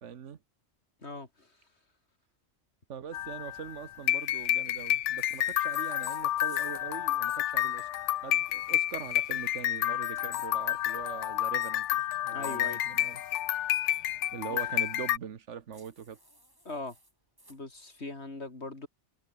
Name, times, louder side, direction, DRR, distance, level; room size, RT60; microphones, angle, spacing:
voice 1, 0.0-0.4 2.9-7.9 8.2-13.2 14.3-16.2, right 8 dB, 90° right, 1.4 m, -42 dB
voice 2, 1.0-1.6 12.3-12.8 13.6-13.8 14.5-14.6 16.6-17.0 17.5-18.9, left 2 dB, 65° left, 4.1 m, -40 dB
sound 1, 3.1-15.2, left 13 dB, 80° left, 0.9 m, -30 dB
sound 2, 5.2-6.8 8.9-10.2 12.4-13.9 15.7-17.6, right 1 dB, 20° right, 4.4 m, -58 dB
omnidirectional pair, 1.2 m